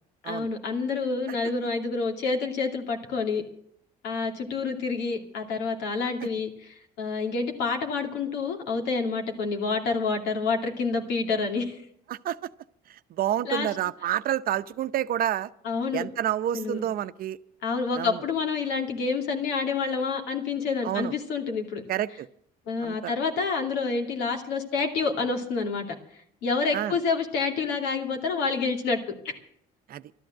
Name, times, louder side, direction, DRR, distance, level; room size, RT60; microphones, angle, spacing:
voice 1, 0.2-3.4 4.0-11.8 13.4-13.7 15.6-16.0 16.5-16.8 17.6-21.8 22.7-25.8 26.4-29.0 29.2-29.3, left 4 dB, 90° left, 4 dB, 2.5 m, -28 dB
voice 2, 12.9-15.5 15.9-17.4 18.0-18.2 20.8-21.1 21.9-22.3 22.8-23.1 26.7-26.9 29.9-30.0, right 11 dB, 60° right, 13 dB, 0.7 m, -29 dB
13.0 x 12.0 x 7.6 m, 0.68 s
cardioid pair, 110°, 17 cm